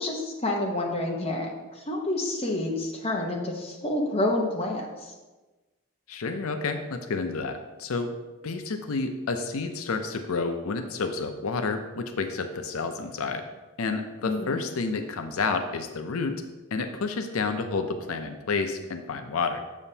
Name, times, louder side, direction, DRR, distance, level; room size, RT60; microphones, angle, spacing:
voice 1, 0.0-5.1 14.2-14.6, left 1 dB, 30° left, 0 dB, 0.9 m, -29 dB
voice 2, 6.1-8.1 8.4-13.5 13.8-16.4 16.7-19.6, left 4 dB, 90° left, 7 dB, 0.5 m, -30 dB
7.1 x 6.9 x 2.8 m, 1.2 s
head